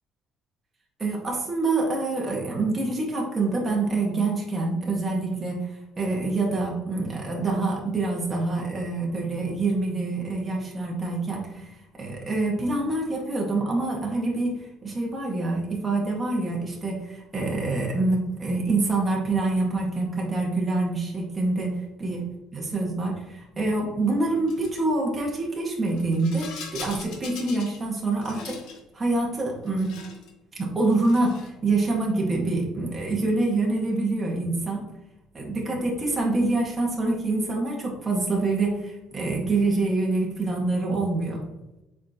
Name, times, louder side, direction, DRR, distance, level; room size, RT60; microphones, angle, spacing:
voice 1, 1.0-5.7 6.0-11.7 12.0-22.2 22.5-28.6 28.9-30.0 30.5-34.9 35.3-41.4, right 2 dB, 20° right, -2 dB, 1.8 m, -26 dB
Rattle, 24.5-24.8 25.9-27.8 28.1-28.8 29.6-30.3 30.9-31.6, left 5 dB, 80° left, 1.3 m, -41 dB
7.3 x 5.1 x 3.0 m, 0.95 s
cardioid pair, 125°, 0 cm